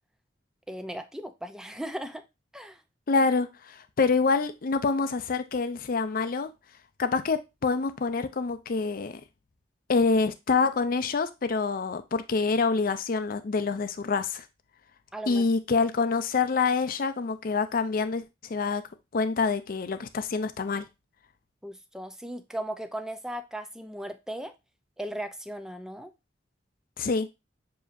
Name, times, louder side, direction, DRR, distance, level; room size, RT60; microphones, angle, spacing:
voice 1, 0.7-2.2 2.5-2.8 15.1-15.5 21.6-24.5 25.0-26.1, right 1 dB, 5° right, 0.5 m, -37 dB
voice 2, 3.1-6.5 7.0-9.1 9.9-14.4 15.3-18.8 19.1-20.8 27.0-27.3, left 4 dB, 55° left, 0.5 m, -26 dB
7.1 x 2.9 x 2.5 m
head